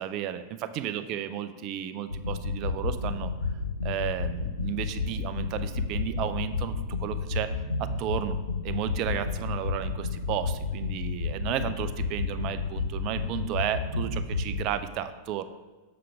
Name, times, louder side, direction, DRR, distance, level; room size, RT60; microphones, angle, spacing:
voice 1, 0.0-3.3 3.8-7.5 7.8-8.4 8.6-15.4, right 10 dB, 40° right, 11 dB, 0.4 m, -33 dB
sound 1, 2.1-14.7, left 4 dB, 85° left, 0.5 m, -31 dB
7.6 x 6.8 x 3.5 m, 1.2 s
figure-of-eight pair, 90°, 0 cm